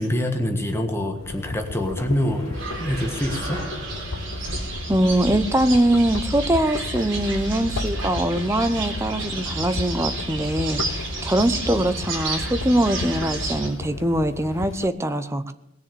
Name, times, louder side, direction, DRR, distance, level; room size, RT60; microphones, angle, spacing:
voice 1, 0.0-3.6, left 1 dB, 10° left, 4 dB, 1.4 m, -25 dB
sound 1, 1.2-14.9, left 4 dB, 85° left, 0.5 m, -35 dB
sound 2, 2.0-6.7, equal, 35° right, 4.3 m, -40 dB
sound 3, 2.5-13.7, right 2 dB, 65° right, 3.8 m, -31 dB
voice 2, 4.9-15.5, right 1 dB, 15° right, 10 dB, 0.7 m, -22 dB
19.5 x 7.1 x 6.9 m, 0.85 s
head